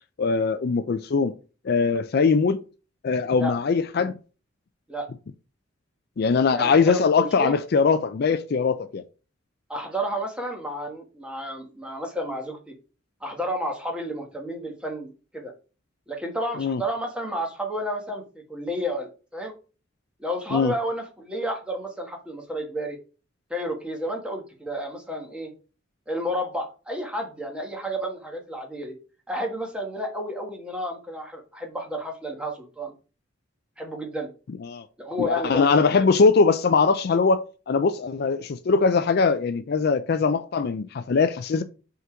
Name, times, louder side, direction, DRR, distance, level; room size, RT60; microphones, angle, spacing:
voice 1, 0.2-1.3 1.6-2.6 3.0-4.1 6.2-9.0 16.6-16.8 20.5-20.7 34.6-34.8 35.2-41.6, left 4 dB, 50° left, 0.4 m, -21 dB
voice 2, 6.5-7.6 9.7-12.7 13.2-15.5 16.1-19.5 20.2-23.0 23.5-25.5 26.1-28.9 29.3-32.9 33.8-34.3 35.0-36.0, equal, 5° right, 1.4 m, -31 dB
5.6 x 3.8 x 4.4 m
head